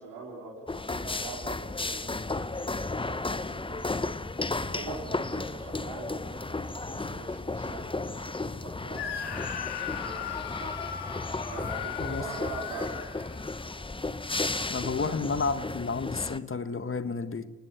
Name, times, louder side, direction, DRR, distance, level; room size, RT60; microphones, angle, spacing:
voice 1, 0.0-4.0 4.3-10.8 11.5-13.0, right 4 dB, 75° right, 4.5 m, -44 dB
sound 1, 0.7-16.4, left 3 dB, 10° left, 1.0 m, -34 dB
Screaming, 8.9-13.8, left 9 dB, 60° left, 2.4 m, -38 dB
voice 2, 14.6-17.5, left 4 dB, 30° left, 1.6 m, -31 dB
29.0 x 19.5 x 6.6 m
hypercardioid pair, 45°, 44 cm